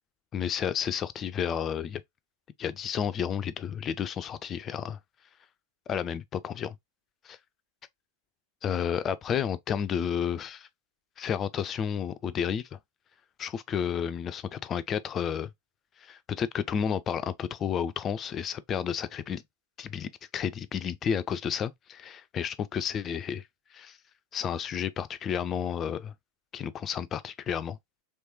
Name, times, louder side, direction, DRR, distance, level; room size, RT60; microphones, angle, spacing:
voice 1, 0.3-2.0 2.6-5.0 5.9-6.8 7.2-7.4 8.6-10.7 11.2-12.8 13.4-15.5 16.0-19.4 19.8-23.4 23.7-24.0 24.3-26.1 26.5-27.8, left 8 dB, 25° left, 0.3 m, -31 dB
3.1 x 3.1 x 2.8 m
figure-of-eight pair, 90°, 0 cm